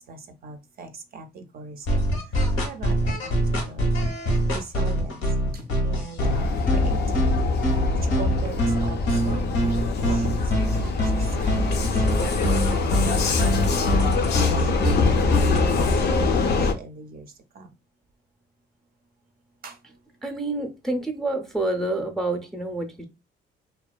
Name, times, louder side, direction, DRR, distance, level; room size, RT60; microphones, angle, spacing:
voice 1, 0.1-2.0 2.6-3.3 3.6-3.9 4.5-5.2 5.8-7.3 8.0-11.9 12.7-14.9 15.5-17.3 17.6-17.7 19.6-19.7, right 4 dB, 50° right, 0.4 m, -40 dB
sound 1, 1.9-15.6, equal, 85° left, 0.9 m, -24 dB
Vehicle, 6.2-16.7, left 3 dB, 55° left, 0.4 m, -24 dB
voice 2, 20.2-23.0, right 2 dB, ahead, 0.5 m, -28 dB
2.4 x 2.3 x 2.2 m
cardioid pair, 90°, 20 cm